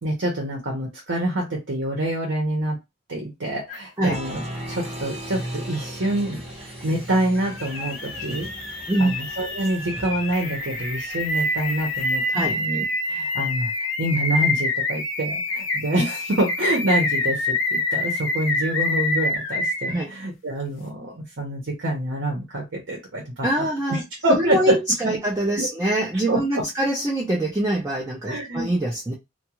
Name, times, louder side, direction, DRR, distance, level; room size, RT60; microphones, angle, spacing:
voice 1, 0.0-2.8 3.1-4.4 4.7-6.4 6.8-8.5 9.0-12.2 12.6-13.7 14.0-24.8 25.6-25.7 26.3-26.6 28.2-28.7, right 1 dB, 60° right, 0.8 m, -26 dB
sound 1, 3.7-3.8 7.1-20.0, left 2 dB, 65° left, 0.6 m, -26 dB
Applause, 4.1-12.5, right 1 dB, 30° right, 0.9 m, -38 dB
voice 2, 23.4-24.0 24.3-29.1, right 1 dB, 15° right, 0.4 m, -24 dB
2.4 x 2.3 x 2.9 m
head